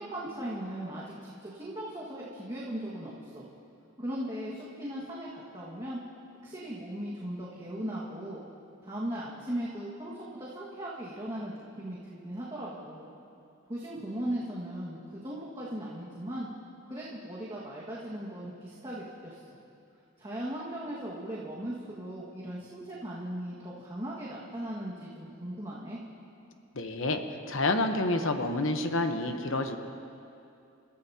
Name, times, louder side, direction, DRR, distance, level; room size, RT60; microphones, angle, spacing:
voice 1, 0.0-3.5 4.0-6.0 6.4-8.4 8.8-13.1 13.7-16.5 16.9-19.4 20.2-26.0, right 1 dB, 20° right, -8 dB, 1.8 m, -38 dB
voice 2, 26.7-29.8, left 2 dB, 65° left, 6 dB, 1.0 m, -29 dB
30.0 x 15.0 x 2.9 m, 2.6 s
head